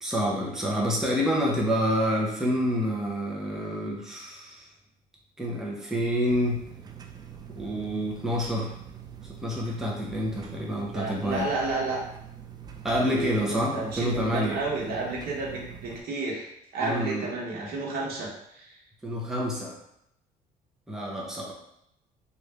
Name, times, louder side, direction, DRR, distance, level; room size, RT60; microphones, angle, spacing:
voice 1, 0.0-4.7 5.4-6.6 7.5-8.7 9.4-11.5 12.8-14.6 16.8-17.3 19.0-19.8 20.9-21.5, equal, 5° right, -3 dB, 0.7 m, -28 dB
sound 1, 6.3-16.0, right 8 dB, 25° right, 0.3 m, -44 dB
voice 2, 10.9-12.0 13.0-16.5 16.7-18.8, right 3 dB, 65° right, -4 dB, 1.1 m, -31 dB
3.1 x 2.5 x 3.3 m, 0.76 s
cardioid pair, 110°, 17 cm